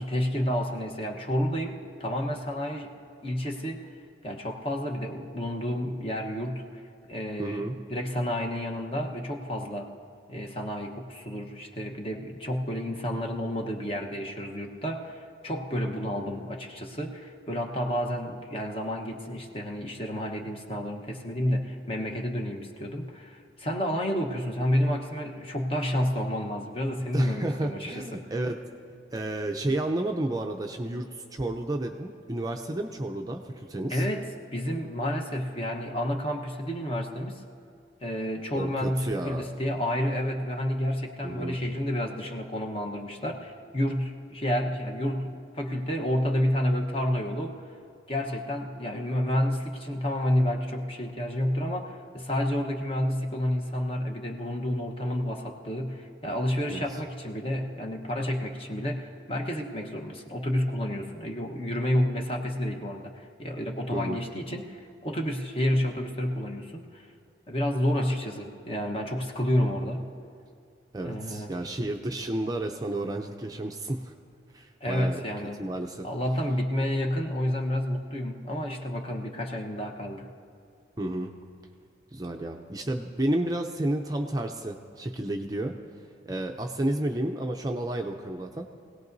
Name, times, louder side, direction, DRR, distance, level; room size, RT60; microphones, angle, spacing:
voice 1, 0.0-2.9 3.2-3.9 4.2-6.8 7.1-9.9 10.3-28.3 33.9-37.4 38.0-47.6 48.1-67.1 67.5-70.1 71.0-71.5 74.8-75.6 76.0-80.3, equal, 30° left, 2 dB, 1.1 m, -30 dB
voice 2, 7.4-7.7 27.1-28.6 29.1-34.1 38.5-39.5 41.2-41.6 56.7-56.8 63.9-64.2 70.9-74.1 74.5-75.2 75.6-76.1 81.0-81.3 82.1-85.7 86.3-88.7, right 1 dB, 20° right, 3 dB, 0.5 m, -31 dB
24.5 x 17.5 x 2.7 m, 2.3 s
head